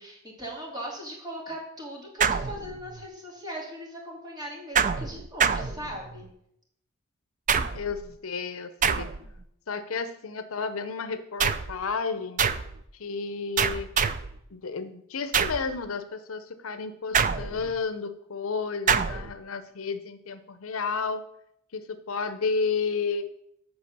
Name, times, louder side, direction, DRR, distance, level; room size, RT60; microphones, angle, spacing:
voice 1, 0.0-6.3, equal, 20° right, -2 dB, 2.7 m, -39 dB
sound 1, 2.2-3.1 4.8-6.3 7.5-8.0 8.8-9.4 11.4-11.8 12.4-12.8 13.6-14.4 15.3-15.7 17.1-17.8 18.9-19.3, right 6 dB, 40° right, 0.5 m, -26 dB
voice 2, 7.7-9.1 9.7-12.4 12.9-13.9 14.5-21.2 21.7-23.3, left 5 dB, 70° left, 11 dB, 0.7 m, -32 dB
8.1 x 6.1 x 6.7 m, 0.74 s
head